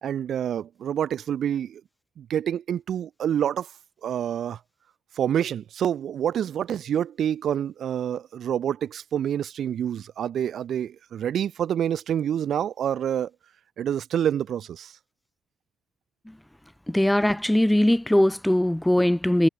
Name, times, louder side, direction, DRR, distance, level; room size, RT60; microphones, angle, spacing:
voice 1, 0.0-1.8 2.2-3.7 4.0-4.6 5.2-13.3 13.8-14.9, right 9 dB, 65° right, 0.3 m, -27 dB
voice 2, 16.9-19.5, left 1 dB, 5° left, 0.8 m, -20 dB
cardioid pair, 90°, 0 cm